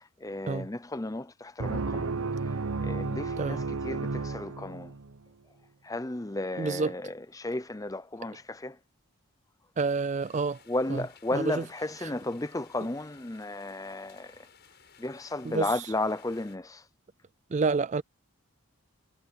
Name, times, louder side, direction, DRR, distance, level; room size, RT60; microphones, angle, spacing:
voice 1, 0.0-2.1 2.8-4.9 5.8-8.8 10.7-14.3 15.0-16.8, left 2 dB, 15° left, 0.6 m, -34 dB
sound 1, 1.6-5.2, right 3 dB, 65° right, 0.9 m, -32 dB
voice 2, 6.6-6.9 9.8-10.6 10.9-11.0 11.3-11.6 12.0-12.1 15.4-15.9 17.5-18.0, right 4 dB, 35° right, 0.4 m, -29 dB
sound 2, 10.2-16.6, left 6 dB, 50° left, 7.8 m, -58 dB
head